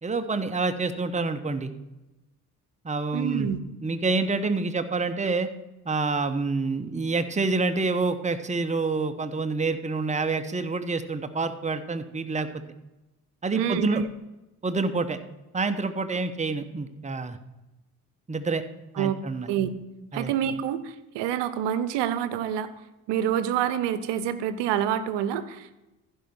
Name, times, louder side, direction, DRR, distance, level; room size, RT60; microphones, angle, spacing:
voice 1, 0.0-1.7 2.8-3.5 3.8-5.5 5.8-12.5 13.4-14.0 14.6-15.2 15.5-17.4 18.3-18.6 19.0-19.5 20.1-20.3, right 3 dB, 15° right, 8 dB, 1.0 m, -27 dB
voice 2, 3.1-3.6 13.5-14.0 19.0-19.7 20.1-22.7 23.1-25.8, right 10 dB, 70° right, 14 dB, 0.9 m, -27 dB
15.0 x 5.6 x 4.4 m, 1.0 s
hypercardioid pair, 45°, 44 cm